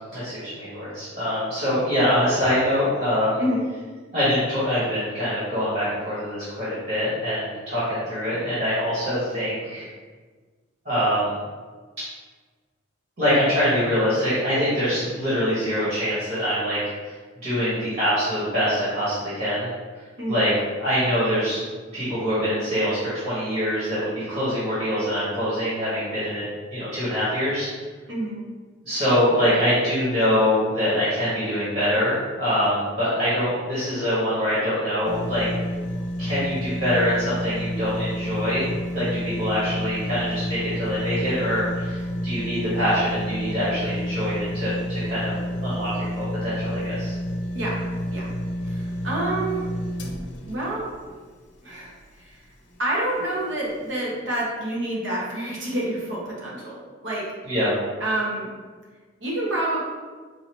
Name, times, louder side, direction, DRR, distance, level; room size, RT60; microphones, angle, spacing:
voice 1, 0.1-3.4 4.1-9.9 10.8-11.3 13.2-17.1 17.4-19.7 20.3-20.5 20.8-21.6 21.9-26.4 26.7-27.7 28.8-35.4 36.2-45.3 45.6-47.1 57.4-57.7, equal, 45° right, -11 dB, 1.5 m, -24 dB
voice 2, 28.1-28.4 47.5-47.8 48.1-48.3 48.6-49.6 50.5-50.9 51.6-52.4 52.8-57.3 58.0-58.5 59.2-59.8, right 1 dB, 70° right, -5 dB, 1.0 m, -28 dB
sound 1, 35.0-52.2 52.7-52.8, equal, 65° left, 0.6 m, -30 dB
4.8 x 2.7 x 3.0 m, 1.5 s
head